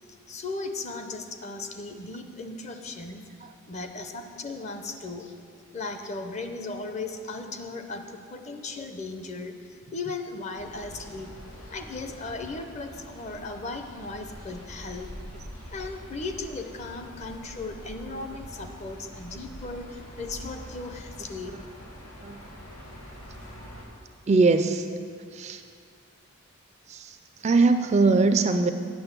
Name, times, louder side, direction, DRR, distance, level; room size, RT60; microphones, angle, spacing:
voice 1, 0.3-5.4 5.7-11.3 11.7-15.1 15.7-21.6, left 3 dB, 30° left, 6 dB, 0.6 m, -37 dB
sound 1, 10.5-23.8, equal, 90° left, 2.2 m, -44 dB
voice 2, 24.3-24.9 25.3-25.6 26.9-28.7, right 3 dB, 30° right, 8 dB, 0.3 m, -22 dB
7.9 x 6.3 x 8.1 m, 2.2 s
head